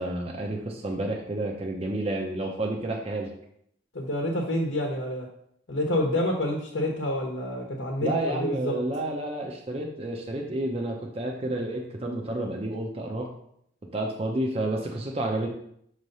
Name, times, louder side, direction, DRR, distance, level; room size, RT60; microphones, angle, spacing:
voice 1, 0.0-3.3 8.0-13.3 13.9-15.5, right 1 dB, 30° right, 1 dB, 0.7 m, -30 dB
voice 2, 3.9-5.3 5.7-8.7, left 1 dB, 70° left, 0 dB, 1.1 m, -28 dB
6.5 x 3.3 x 5.3 m, 0.71 s
head